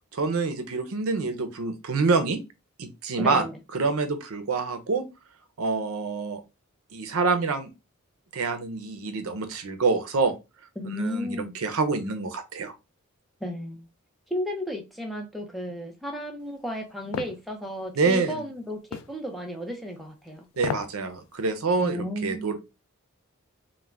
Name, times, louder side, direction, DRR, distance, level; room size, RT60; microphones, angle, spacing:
voice 1, 0.1-2.4 2.8-3.4 3.7-5.0 5.6-6.4 6.9-7.7 8.3-10.4 10.9-12.7 18.0-18.4 20.6-22.7, right 4 dB, 80° right, 0.5 m, -26 dB
voice 2, 3.2-3.6 10.8-11.5 13.4-13.9 14.3-20.5 21.8-22.6, equal, ahead, 0.4 m, -33 dB
sound 1, 17.1-17.4 18.9-19.1 20.5-21.0 21.3-21.4, left 7 dB, 90° left, 0.3 m, -32 dB
2.4 x 2.1 x 3.2 m
head